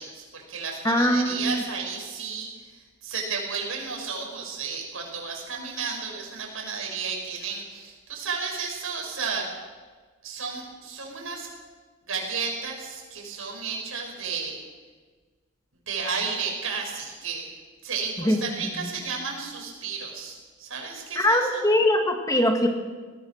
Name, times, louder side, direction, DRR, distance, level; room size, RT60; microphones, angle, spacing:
voice 1, 0.0-9.5 10.2-11.5 12.1-14.6 15.9-17.4 17.8-21.7, right 5 dB, 75° right, 1 dB, 6.3 m, -33 dB
voice 2, 0.8-1.6 18.2-18.4 18.8-18.9 21.2-22.7, left 1 dB, 15° left, 4 dB, 1.8 m, -22 dB
22.5 x 18.0 x 6.5 m, 1.4 s
head